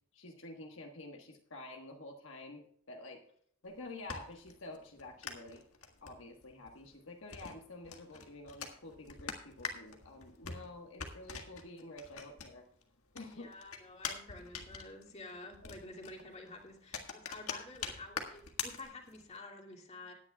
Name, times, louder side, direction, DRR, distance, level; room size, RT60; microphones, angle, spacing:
voice 1, 0.1-3.2 3.6-5.6 6.0-12.6 13.1-13.5 15.6-15.7, left 2 dB, 65° left, 2 dB, 1.4 m, -49 dB
sound 1, 3.7-12.8 13.1-19.4, left 6 dB, 90° left, 1.7 m, -45 dB
voice 2, 13.3-20.1, left 2 dB, 30° left, 1 dB, 2.2 m, -50 dB
19.0 x 9.7 x 2.3 m, 0.64 s
head